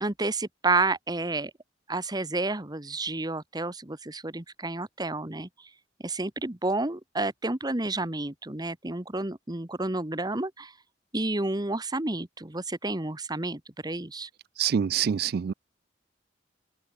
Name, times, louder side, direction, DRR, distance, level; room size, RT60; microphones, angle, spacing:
voice 1, 0.0-1.5 1.9-5.7 6.0-10.7 11.1-14.3, right 2 dB, 25° right, 1.5 m, -30 dB
voice 2, 14.6-15.5, right 8 dB, 60° right, 0.3 m, -26 dB
open air
head